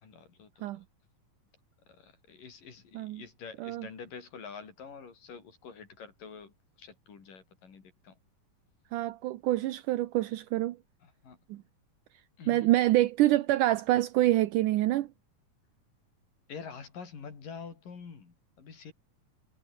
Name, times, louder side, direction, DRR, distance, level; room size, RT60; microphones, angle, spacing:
voice 1, 0.0-0.8 1.9-8.2 11.0-11.4 12.4-12.7 16.5-18.9, left 6 dB, 85° left, 6.1 m, -47 dB
voice 2, 8.9-10.8 11.5-11.6 12.5-15.1, right 15 dB, 75° right, 2.4 m, -26 dB
omnidirectional pair, 3.7 m